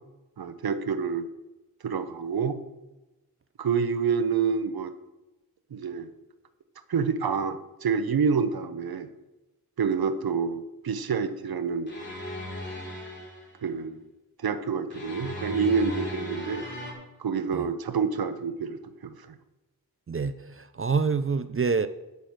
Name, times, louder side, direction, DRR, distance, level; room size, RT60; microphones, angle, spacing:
voice 1, 0.4-1.3 1.8-2.6 3.6-4.9 5.7-6.1 6.9-9.1 9.8-11.9 13.6-14.0 14.4-16.6 17.2-19.4, right 6 dB, 85° right, 11 dB, 0.8 m, -28 dB
sound 1, 11.9-13.5 14.9-16.9, left 1 dB, 30° left, 2.8 m, -37 dB
voice 2, 20.1-21.9, right 5 dB, 40° right, 13 dB, 0.5 m, -27 dB
11.5 x 6.2 x 6.4 m, 1.0 s
wide cardioid pair, 80°, 36 cm